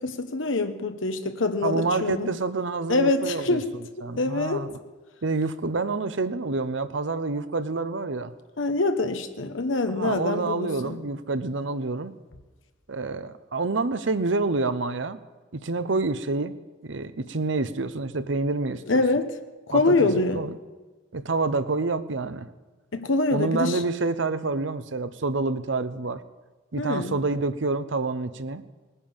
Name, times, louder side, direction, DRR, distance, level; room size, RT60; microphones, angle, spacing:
voice 1, 0.0-2.3 2.9-3.6 4.2-4.7 8.6-11.0 18.9-19.3 19.7-20.4 22.9-23.8 26.8-27.1, left 2 dB, 85° left, 7 dB, 1.1 m, -25 dB
voice 2, 1.6-3.6 4.0-4.8 5.2-8.3 9.9-12.1 12.9-15.2 15.5-16.5 16.8-18.8 19.7-20.6 21.1-22.5 23.3-26.2 26.7-28.6, right 3 dB, 75° right, 12 dB, 0.8 m, -27 dB
19.5 x 10.0 x 7.3 m, 1.2 s
head